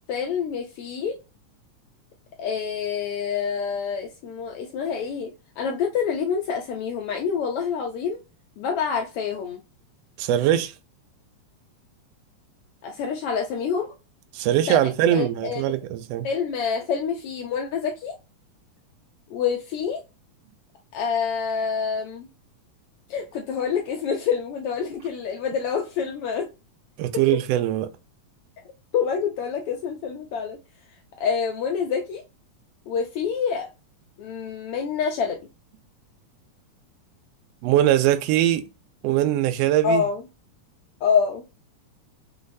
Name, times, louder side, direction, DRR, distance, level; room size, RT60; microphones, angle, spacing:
voice 1, 0.1-1.2 2.4-5.3 5.6-8.2 8.6-9.6 12.8-13.9 14.7-14.8 15.1-15.6 16.2-18.1 19.3-20.0 20.9-22.3 23.1-26.5 28.9-30.6 31.2-32.2 32.9-33.7 34.2-35.4 39.8-40.2 41.0-41.4, left 6 dB, 90° left, 1.2 m, -27 dB
voice 2, 10.2-10.7 14.3-16.3 27.0-27.9 37.6-38.7 39.0-40.0, right 12 dB, 80° right, 1.4 m, -21 dB
5.9 x 3.1 x 2.6 m
omnidirectional pair, 3.5 m